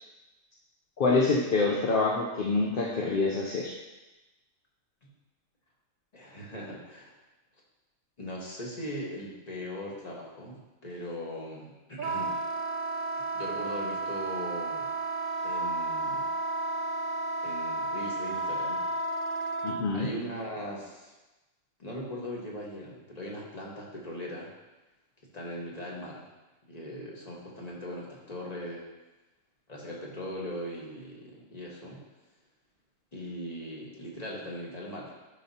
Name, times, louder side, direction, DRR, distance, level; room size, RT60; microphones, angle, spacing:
voice 1, 1.0-3.7 19.6-20.1, left 3 dB, 50° left, -3 dB, 0.7 m, -26 dB
voice 2, 6.1-7.1 8.2-12.4 13.2-14.9 15.4-16.3 17.4-18.8 19.9-21.1 21.8-24.5 25.3-26.3 26.7-28.9 29.7-32.0 33.1-35.3, equal, 30° left, -3 dB, 1.4 m, -39 dB
Wind instrument woodwind instrument, 12.0-19.8, right 2 dB, 80° right, 0.4 m, -32 dB
10.0 x 5.3 x 2.8 m, 1.1 s
omnidirectional pair, 1.4 m